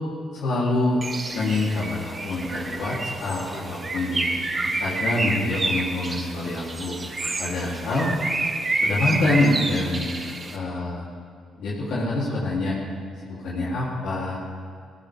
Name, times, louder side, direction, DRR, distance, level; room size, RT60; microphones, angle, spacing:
voice 1, 0.3-1.0 1.3-4.3 4.6-7.0 7.4-8.1 8.8-10.1 10.5-11.0 11.6-12.8 13.2-14.4, left 2 dB, 75° left, -6 dB, 3.8 m, -26 dB
Bird, 1.0-10.6, right 2 dB, 30° right, 1.5 m, -29 dB
17.5 x 17.5 x 3.8 m, 2.2 s
cardioid pair, 90°, 0 cm